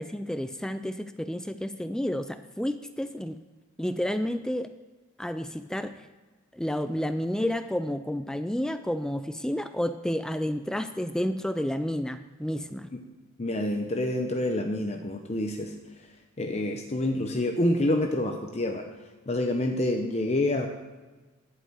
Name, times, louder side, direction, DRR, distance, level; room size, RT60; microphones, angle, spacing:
voice 1, 0.0-3.4 3.8-4.7 5.2-6.1 6.5-12.9, left 1 dB, 5° left, 10 dB, 0.3 m, -30 dB
voice 2, 13.4-15.7 16.4-18.9 19.3-20.7, left 1 dB, 30° left, 4 dB, 0.7 m, -27 dB
11.0 x 5.2 x 7.9 m, 1.3 s
head